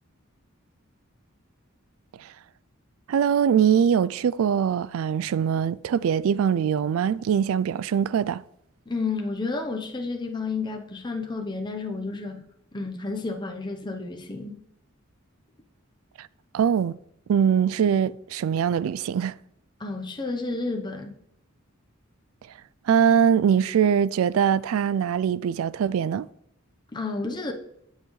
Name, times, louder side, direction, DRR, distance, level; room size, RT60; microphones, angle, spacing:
voice 1, 3.1-8.4 16.2-16.3 16.5-16.9 17.3-19.3 22.9-26.3, right 8 dB, 75° right, 0.3 m, -22 dB
voice 2, 8.9-12.4 12.7-14.5 19.8-21.2 26.9-27.5, left 3 dB, 20° left, 0.8 m, -31 dB
16.0 x 5.6 x 3.2 m
head